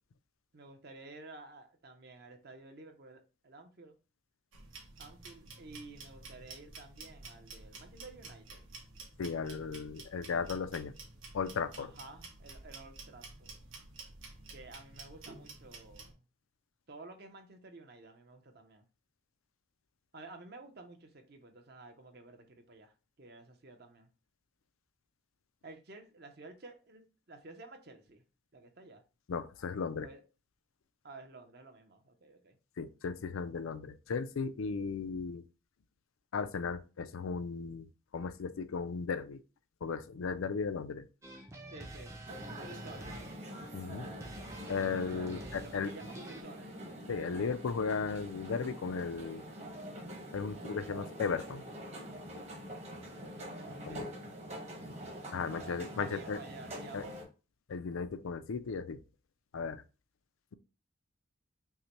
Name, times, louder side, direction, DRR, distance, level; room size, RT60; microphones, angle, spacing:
voice 1, 0.5-4.0 5.0-8.6 11.8-13.5 14.5-16.2 16.9-18.9 20.1-24.1 25.6-28.2 28.5-29.0 30.0-30.2 31.0-32.6 41.7-42.2 42.5-43.1 45.0-46.7 53.2-54.1 55.5-57.2, right 3 dB, 50° right, 0.7 m, -52 dB
sound 1, 4.5-16.1, right 3 dB, 80° right, 1.1 m, -51 dB
voice 2, 9.2-10.9 11.3-11.9 29.3-30.1 32.8-35.4 36.3-39.4 39.8-41.1 43.7-44.1 44.7-45.9 47.1-49.4 50.3-51.6 53.9-54.1 55.3-56.4 56.9-57.0 57.7-59.0 59.5-59.8, left 5 dB, 85° left, 0.4 m, -36 dB
sound 2, 41.2-46.4, right 1 dB, 15° right, 0.5 m, -48 dB
sound 3, 42.3-57.2, equal, 30° right, 1.0 m, -45 dB
5.5 x 2.2 x 3.0 m
head